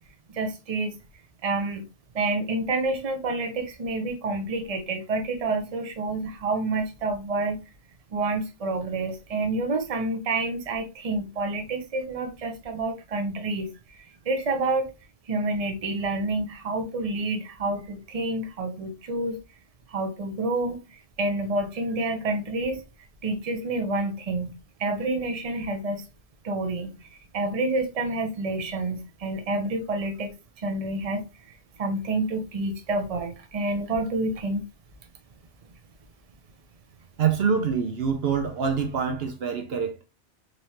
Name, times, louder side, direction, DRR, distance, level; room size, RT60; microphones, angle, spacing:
voice 1, 0.3-1.0 1.4-1.9 2.1-7.6 8.1-14.9 15.3-19.4 19.9-22.8 23.2-26.0 26.4-27.1 27.3-31.2 31.8-34.6, right 2 dB, 40° right, 0.7 m, -28 dB
voice 2, 37.2-40.0, right 6 dB, 70° right, 0.8 m, -25 dB
4.0 x 3.3 x 2.8 m
omnidirectional pair, 1.1 m